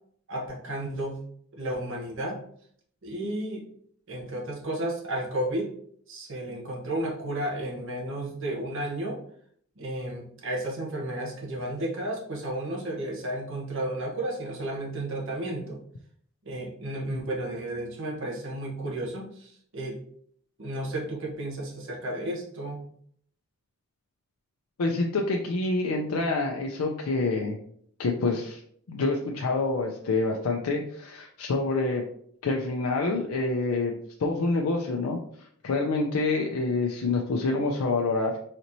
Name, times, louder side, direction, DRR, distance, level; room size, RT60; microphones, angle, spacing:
voice 1, 0.3-1.2 1.5-2.4 3.0-3.6 4.1-5.7 6.1-9.2 9.8-15.8 16.5-20.0 20.6-22.8, right 1 dB, 60° right, -2 dB, 1.0 m, -32 dB
voice 2, 24.8-27.6 28.0-28.6 28.9-32.0 32.4-33.9 34.2-38.4, left 3 dB, 85° left, 1 dB, 0.4 m, -27 dB
4.2 x 2.9 x 2.6 m, 0.63 s
head